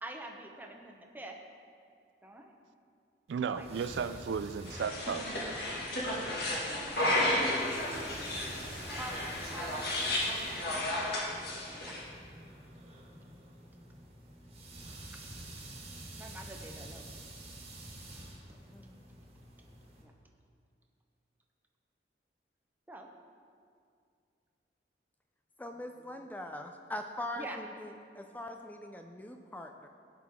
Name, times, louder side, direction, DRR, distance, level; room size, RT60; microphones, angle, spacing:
voice 1, 0.0-1.4 2.2-2.5 3.4-3.7 5.2-5.6 8.6-10.1 10.5-11.0 11.7-12.0 16.2-17.0 20.0-20.1 22.9-23.1 25.7-26.2 27.4-27.6, right 1 dB, 10° right, 2 dB, 0.8 m, -47 dB
sound 1, 3.3-20.0, right 1 dB, 35° right, 1.6 m, -49 dB
voice 2, 3.3-5.3, right 6 dB, 80° right, 12 dB, 0.3 m, -34 dB
sound 2, 4.6-12.0, left 1 dB, 60° left, 2.0 m, -33 dB
voice 3, 18.7-19.0 25.6-29.9, left 1 dB, 10° left, 5 dB, 0.4 m, -42 dB
16.0 x 5.9 x 3.6 m, 2.3 s
head